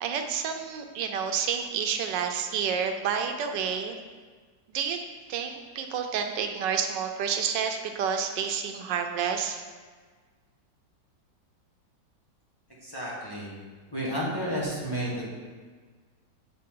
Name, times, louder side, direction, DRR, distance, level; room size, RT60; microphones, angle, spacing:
voice 1, 0.0-4.0 4.7-5.0 5.3-9.6, right 7 dB, 85° right, 5 dB, 1.3 m, -29 dB
voice 2, 12.8-13.6 13.9-15.3, equal, 15° left, -7 dB, 1.4 m, -31 dB
8.6 x 4.1 x 3.7 m, 1.5 s
omnidirectional pair, 1.9 m